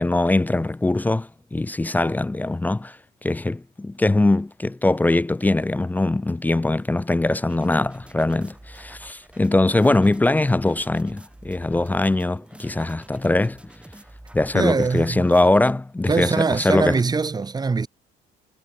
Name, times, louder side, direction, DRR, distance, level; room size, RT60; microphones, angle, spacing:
voice 1, 0.0-3.0 3.2-13.6 14.3-17.0, left 2 dB, 10° left, 0.5 m, -21 dB
sound 1, 7.5-15.7, right 1 dB, 5° right, 4.5 m, -46 dB
voice 2, 14.5-15.3 16.1-17.9, right 4 dB, 25° right, 2.5 m, -22 dB
cardioid pair, 110°, 17 cm